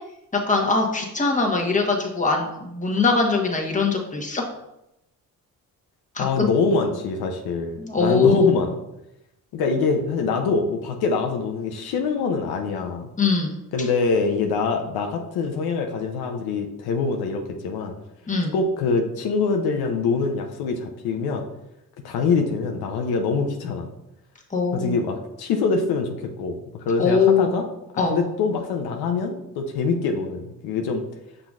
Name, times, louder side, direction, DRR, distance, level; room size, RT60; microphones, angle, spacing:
voice 1, 0.3-4.4 6.1-6.5 7.8-8.6 13.2-13.6 18.3-18.5 24.5-25.0 27.0-27.5 28.0-28.2, left 4 dB, 20° left, 1 dB, 1.1 m, -21 dB
voice 2, 6.2-8.8 9.5-13.1 13.7-17.9 18.5-21.4 22.0-23.9 24.7-27.7 28.1-31.0, left 4 dB, 80° left, 3 dB, 0.7 m, -24 dB
5.8 x 3.8 x 2.4 m, 0.87 s
supercardioid pair, 70°, 37 cm